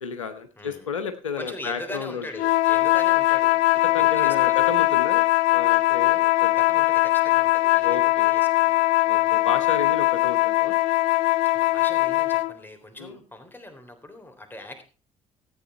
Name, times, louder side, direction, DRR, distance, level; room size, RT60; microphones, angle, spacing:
voice 1, 0.0-2.3 3.8-6.7 7.8-8.4 9.1-10.7 13.0-13.2, left 6 dB, 85° left, 8 dB, 0.8 m, -32 dB
voice 2, 0.6-0.9 1.4-3.6 4.0-4.7 6.2-8.9 9.1-9.5 11.5-14.8, left 1 dB, 10° left, 5 dB, 3.6 m, -41 dB
sound 1, 2.3-12.5, left 18 dB, 60° left, 0.5 m, -21 dB
14.0 x 8.8 x 4.3 m, 0.35 s
figure-of-eight pair, 50°, 16 cm